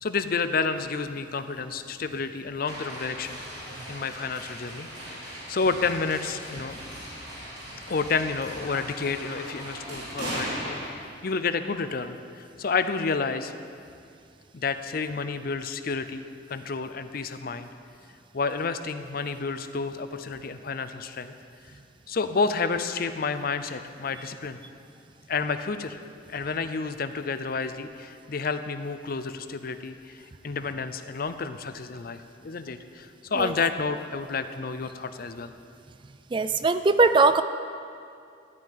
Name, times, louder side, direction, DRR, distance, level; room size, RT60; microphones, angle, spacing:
voice 1, 0.0-3.4 3.9-4.9 5.2-6.8 7.9-13.5 14.5-17.7 18.3-21.3 22.1-24.6 25.3-26.0 26.3-35.5, left 4 dB, 50° left, 10 dB, 0.6 m, -30 dB
sound 1, 2.7-10.9, equal, 60° right, 3.8 m, -38 dB
voice 2, 36.3-37.4, right 3 dB, 25° right, 11 dB, 0.3 m, -20 dB
13.5 x 5.5 x 9.4 m, 2.4 s
head